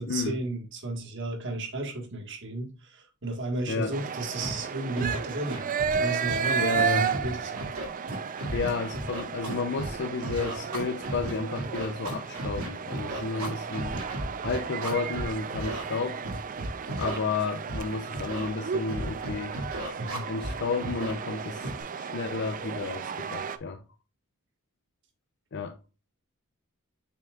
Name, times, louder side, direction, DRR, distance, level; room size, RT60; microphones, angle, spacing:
voice 1, 0.0-7.7 13.3-13.5 20.0-20.2, right 2 dB, 55° right, 1.6 m, -34 dB
sound 1, 3.9-23.6, right 6 dB, 35° right, 0.4 m, -33 dB
Scratching (performance technique), 4.4-4.5 5.0-5.2 5.5-6.0 6.3-7.3 7.6-9.9 10.2-15.3 15.5-15.8 16.2-17.2 17.7-17.8 18.1-18.5 18.9-20.5 20.8-21.1 21.6-21.8, right 1 dB, 75° right, 2.1 m, -34 dB
voice 2, 6.6-7.1 8.5-14.0 14.4-16.2 17.0-19.6 20.3-23.8 25.5-25.8, left 4 dB, 50° left, 0.6 m, -32 dB
7.2 x 5.8 x 2.4 m
head